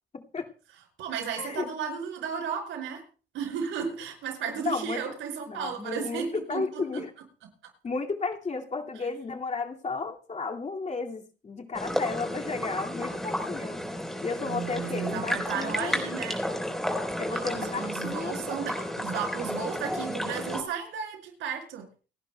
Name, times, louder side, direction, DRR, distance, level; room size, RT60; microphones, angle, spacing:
voice 1, 0.1-0.5 1.3-1.7 4.4-5.0 5.5-7.1 7.8-13.8 14.2-16.0 17.2-18.4, left 4 dB, 35° left, 3 dB, 2.3 m, -33 dB
voice 2, 1.0-3.0 3.3-7.0 14.4-16.4 17.3-21.9, right 7 dB, 85° right, 2 dB, 5.7 m, -34 dB
sound 1, 11.7-20.6, equal, ahead, 4.2 m, -32 dB
29.5 x 11.0 x 2.3 m, 0.36 s
cardioid pair, 90°, 20 cm